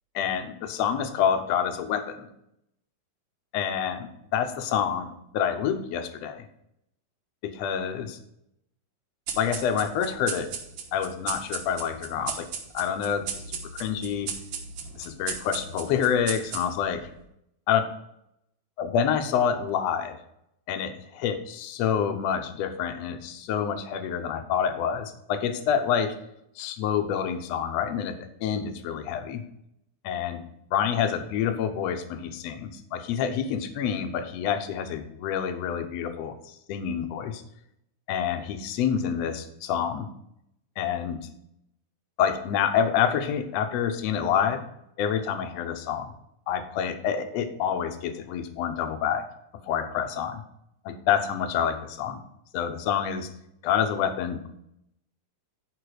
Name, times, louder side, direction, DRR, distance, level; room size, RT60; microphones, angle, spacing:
voice 1, 0.1-2.3 3.5-6.4 7.4-8.2 9.4-10.5 10.9-12.5 12.7-14.3 15.0-17.1 17.7-17.8 18.8-20.2 20.7-26.1 26.6-29.4 30.0-30.4 30.7-37.4 38.1-40.1 40.8-41.2 42.2-44.6 45.0-46.1 46.5-49.3 49.7-50.4 50.8-52.2 52.5-53.3 53.6-54.5, left 8 dB, 75° left, 8 dB, 1.5 m, -27 dB
sound 1, 9.3-17.0, right 6 dB, 70° right, 2.5 m, -37 dB
11.0 x 5.0 x 4.9 m, 0.78 s
omnidirectional pair, 4.0 m